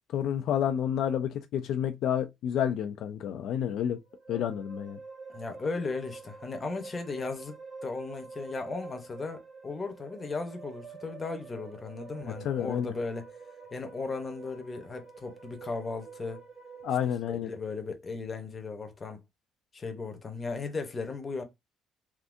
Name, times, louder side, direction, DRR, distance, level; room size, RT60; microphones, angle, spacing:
voice 1, 0.1-4.0 4.3-5.0 12.3-12.9 16.8-17.5, left 9 dB, 70° left, 0.4 m, -30 dB
sound 1, 3.5-17.2, right 4 dB, 35° right, 1.9 m, -47 dB
voice 2, 5.3-13.3 13.7-16.4 17.4-19.2 19.7-21.4, left 4 dB, 25° left, 0.8 m, -36 dB
3.5 x 2.6 x 2.5 m
cardioid pair, 130°, 0 cm